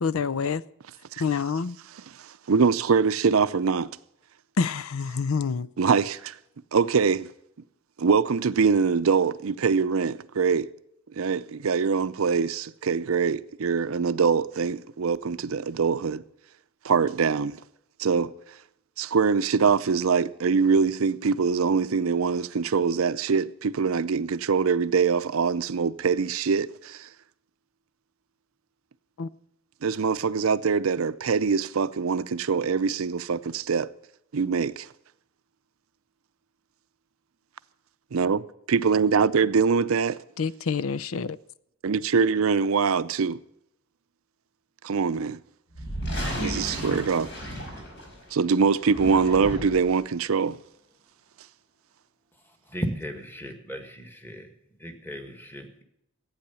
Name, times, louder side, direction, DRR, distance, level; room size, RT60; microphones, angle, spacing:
voice 1, 0.0-0.6 1.2-1.8 4.6-5.7 29.2-29.3 40.4-41.4, left 5 dB, 80° left, 0.5 m, -27 dB
voice 2, 2.2-3.9 5.8-6.4 6.7-7.3 8.0-10.7 11.1-16.2 16.8-17.6 18.0-18.3 19.0-27.1 29.8-33.9 34.3-34.9 38.1-40.2 41.8-43.4 44.8-45.4 46.4-47.3 48.3-50.6, right 5 dB, 80° right, 0.5 m, -23 dB
sound 1, 45.7-48.3 48.8-49.9, equal, 60° left, 5.3 m, -33 dB
voice 3, 52.7-54.5 54.8-55.8, right 1 dB, 10° left, 1.7 m, -35 dB
15.0 x 8.9 x 7.0 m
head